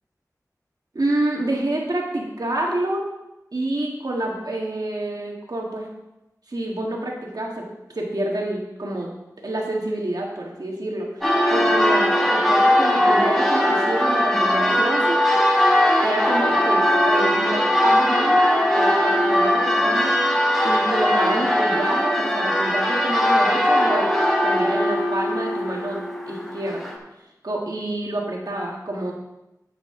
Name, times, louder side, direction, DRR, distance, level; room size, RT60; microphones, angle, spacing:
voice 1, 0.9-3.0 3.5-5.9 6.5-7.7 7.9-9.1 9.4-15.2 16.0-18.4 18.7-24.2 24.4-26.0 26.3-26.9 27.4-29.1, right 1 dB, 80° right, -1 dB, 1.8 m, -28 dB
Church bell, 11.2-26.9, left 1 dB, 5° left, 2.7 m, -20 dB
10.0 x 8.6 x 3.8 m, 0.95 s
wide cardioid pair, 60°, 7 cm